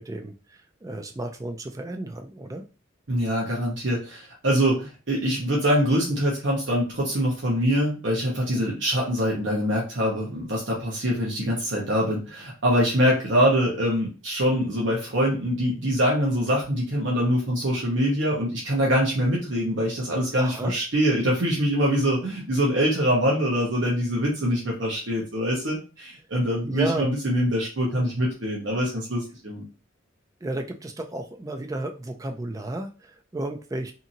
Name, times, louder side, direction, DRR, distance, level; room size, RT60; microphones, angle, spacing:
voice 1, 0.0-2.6 8.5-8.8 20.4-20.7 26.7-27.1 30.4-33.9, right 2 dB, 15° right, 5 dB, 0.3 m, -33 dB
voice 2, 3.1-29.6, equal, 60° right, -3 dB, 0.9 m, -24 dB
2.8 x 2.6 x 2.6 m, 0.33 s
head